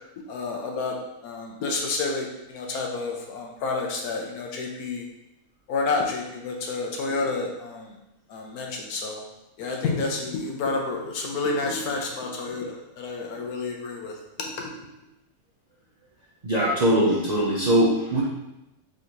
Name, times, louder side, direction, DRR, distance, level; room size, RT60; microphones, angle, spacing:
voice 1, 0.3-1.0 1.2-5.1 5.7-7.9 8.3-9.2 9.6-14.1, left 3 dB, 85° left, 1 dB, 1.2 m, -29 dB
voice 2, 16.4-18.2, right 1 dB, 40° right, -6 dB, 0.6 m, -21 dB
3.8 x 2.6 x 4.4 m, 0.91 s
omnidirectional pair, 1.5 m